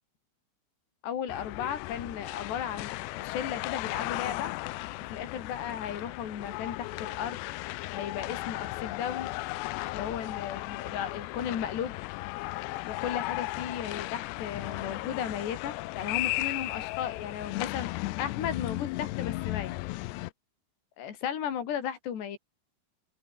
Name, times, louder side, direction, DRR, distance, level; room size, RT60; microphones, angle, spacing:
voice 1, 1.0-4.5 5.1-7.4 7.9-9.3 9.9-11.9 12.9-17.9 18.2-19.8 21.0-22.4, left 9 dB, 60° left, 5.5 m, -35 dB
sound 1, 1.3-20.3, left 20 dB, 85° left, 2.5 m, -35 dB
open air
omnidirectional pair, 5.7 m